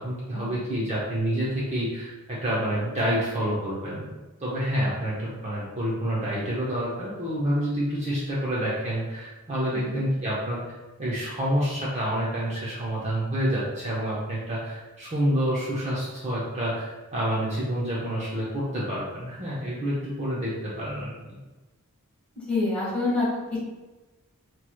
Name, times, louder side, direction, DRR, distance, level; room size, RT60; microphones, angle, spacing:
voice 1, 0.0-4.1 4.4-10.6 11.0-21.4, equal, 30° right, -7 dB, 0.7 m, -28 dB
voice 2, 22.3-23.7, left 2 dB, 5° left, -7 dB, 1.3 m, -28 dB
4.5 x 3.0 x 2.2 m, 1.2 s
head